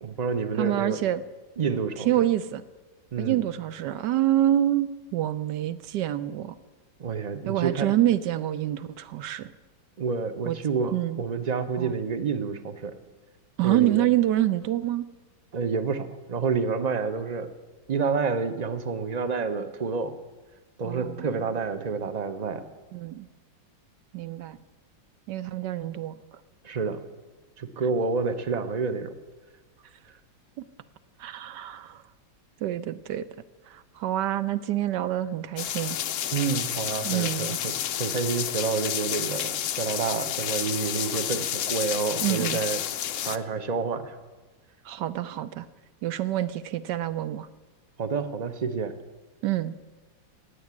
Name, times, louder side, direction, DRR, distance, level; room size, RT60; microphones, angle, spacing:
voice 1, 0.0-1.0 1.6-2.3 3.1-3.4 7.0-7.9 10.0-12.9 13.6-14.1 15.5-17.5 17.9-20.2 20.8-22.6 26.6-27.0 27.6-29.1 36.3-42.8 43.2-44.2 48.0-48.9, right 5 dB, 40° right, 10 dB, 0.5 m, -29 dB
voice 2, 0.6-1.2 2.0-2.6 3.2-6.6 7.4-9.5 10.4-10.6 10.9-11.2 11.8-11.9 13.6-15.1 20.8-21.3 22.9-23.3 24.1-24.6 25.3-26.1 30.6-30.7 31.2-32.0 32.6-33.3 33.7-36.0 37.0-37.6 42.2-42.6 44.8-45.7 46.0-47.5 49.4-49.8, right 13 dB, 70° right, 14 dB, 1.2 m, -27 dB
sound 1, 35.6-43.4, left 10 dB, 90° left, 0.6 m, -30 dB
17.0 x 8.0 x 9.6 m, 1.3 s
omnidirectional pair, 2.0 m